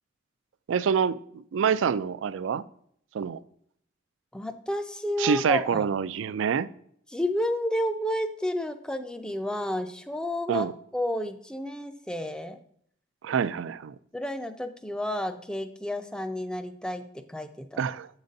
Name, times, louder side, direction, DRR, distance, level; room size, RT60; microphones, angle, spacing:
voice 1, 0.7-2.6 3.1-3.4 5.2-6.7 10.5-10.7 13.2-13.9 17.8-18.1, right 7 dB, 75° right, 16 dB, 0.4 m, -26 dB
voice 2, 4.3-5.9 7.1-12.6 14.1-17.8, left 1 dB, 5° left, 9 dB, 0.4 m, -31 dB
7.8 x 4.0 x 5.2 m, 0.66 s
head